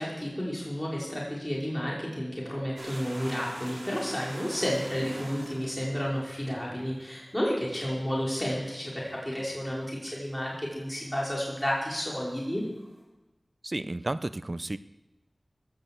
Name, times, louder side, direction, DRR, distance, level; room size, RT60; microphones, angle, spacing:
voice 1, 0.0-12.6, equal, 10° left, -5 dB, 4.9 m, -31 dB
sound 1, 2.8-11.3 11.5-13.0, right 1 dB, 65° right, 6.3 m, -44 dB
voice 2, 13.6-14.8, right 2 dB, 45° right, 14 dB, 0.6 m, -32 dB
16.5 x 8.9 x 7.5 m, 1.0 s
wide cardioid pair, 50°, 0 cm